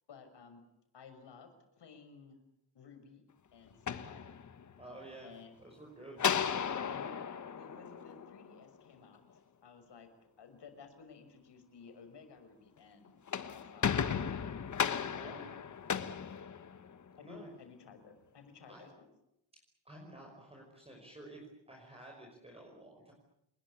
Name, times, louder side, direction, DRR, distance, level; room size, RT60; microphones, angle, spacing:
voice 1, 0.1-0.6 0.9-1.5 1.8-2.4 2.7-3.2 3.5-4.4 5.2-5.5 6.8-10.1 10.4-13.2 13.5-14.6 17.2-19.1, left 5 dB, 65° left, 8 dB, 6.1 m, -55 dB
sound 1, 3.7-4.9 6.2-8.7 13.1-17.1, left 7 dB, 40° left, 1.4 m, -35 dB
voice 2, 4.8-5.3 5.6-6.2 15.1-15.5 17.2-17.5 18.7-18.8 19.8-23.1, right 1 dB, 15° right, 0 dB, 5.5 m, -51 dB
29.0 x 21.0 x 8.5 m, 0.79 s
wide cardioid pair, 175°, 44 cm